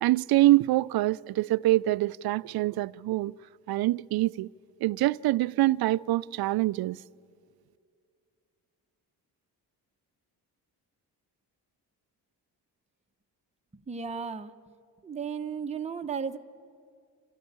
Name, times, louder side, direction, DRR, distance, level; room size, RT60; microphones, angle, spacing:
voice 1, 0.0-3.3 3.7-4.5 4.8-7.0, right 17 dB, 65° right, 0.5 m, -25 dB
voice 2, 13.7-14.5 15.0-16.4, right 6 dB, 15° right, 0.8 m, -34 dB
27.5 x 13.0 x 8.7 m
cardioid pair, 85°, 41 cm